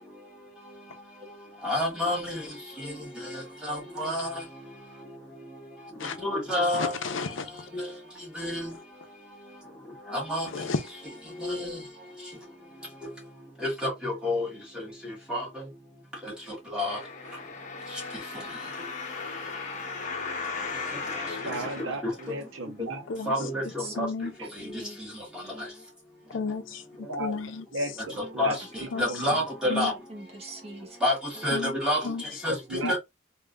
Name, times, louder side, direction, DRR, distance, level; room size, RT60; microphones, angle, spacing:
voice 1, 1.6-2.2 3.7-4.3 6.2-6.8 8.4-8.6 10.3-10.4 13.8-14.5 15.3-15.4 16.7-16.9 23.3-23.6 24.0-24.1 28.4-28.5 29.0-29.9 31.0-31.1 31.4-32.0 32.9-33.0, left 1 dB, 5° right, 1.6 m, -26 dB
voice 2, 6.7-7.5 10.5-10.8 21.7-21.8 23.1-23.3 24.0-24.3 26.3-26.8 27.2-27.7 28.9-29.1 29.7-29.9 31.5-31.8 32.0-32.2 32.8-32.9, left 4 dB, 75° left, 0.6 m, -32 dB
sound 1, 16.8-22.7 23.3-23.4, left 4 dB, 40° left, 0.7 m, -36 dB
voice 3, 21.2-23.0 27.1-27.3 27.7-28.5 29.1-29.3 32.5-33.0, right 2 dB, 85° right, 0.9 m, -34 dB
voice 4, 23.8-24.3 24.6-25.0 28.8-28.9 29.3-31.0 31.4-31.5, right 2 dB, 30° right, 1.0 m, -43 dB
3.5 x 2.6 x 2.4 m
head